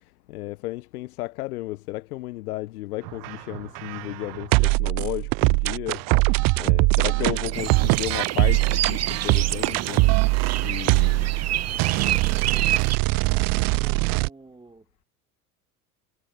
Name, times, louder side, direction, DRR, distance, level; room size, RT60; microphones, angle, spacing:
voice 1, 0.3-6.0 6.6-10.2 10.6-11.4, left 18 dB, 85° left, 0.7 m, -33 dB
sound 1, 3.1-14.3, right 28 dB, 50° right, 0.5 m, -22 dB
voice 2, 6.9-7.3 11.2-12.7 13.1-15.0, right 3 dB, 10° right, 2.3 m, -50 dB
sound 2, 7.5-13.0, right 12 dB, 35° right, 1.0 m, -29 dB
hypercardioid pair, 75°, 43 cm